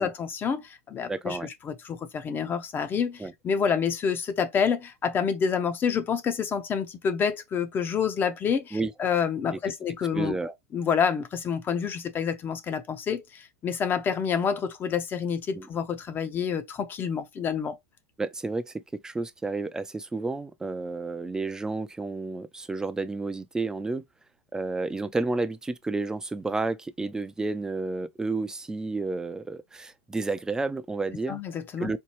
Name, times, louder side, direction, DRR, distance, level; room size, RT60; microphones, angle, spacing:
voice 1, 0.0-10.3 10.7-17.8 31.3-31.9, left 7 dB, 25° left, 0.8 m, -28 dB
voice 2, 1.1-1.5 3.2-3.3 8.7-8.9 9.5-9.6 10.1-10.6 15.5-15.7 18.2-24.0 24.5-31.4 31.8-32.0, right 3 dB, 10° right, 0.5 m, -31 dB
4.5 x 2.3 x 3.1 m
hypercardioid pair, 110°, 8 cm